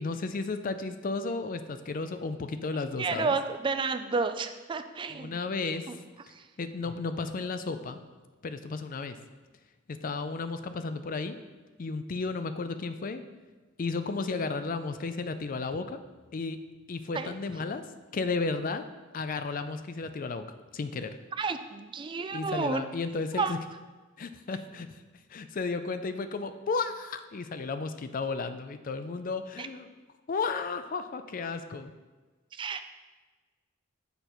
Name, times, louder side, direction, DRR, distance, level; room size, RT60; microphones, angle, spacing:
voice 1, 0.0-3.4 5.1-5.9 6.6-8.0 8.4-9.2 9.9-11.4 11.8-13.2 13.8-16.0 16.3-16.6 16.9-17.8 18.1-18.8 19.1-20.4 20.7-21.1 22.3-23.6 24.2-25.0 25.3-29.9 30.3-31.9, left 4 dB, 45° left, 10 dB, 0.4 m, -33 dB
voice 2, 3.0-5.4 5.9-6.0 6.3-6.4 17.1-17.3 21.4-22.8 23.3-23.5 29.6-29.7 32.5-32.8, right 4 dB, 25° right, 9 dB, 0.3 m, -31 dB
6.7 x 4.4 x 5.2 m, 1.3 s
head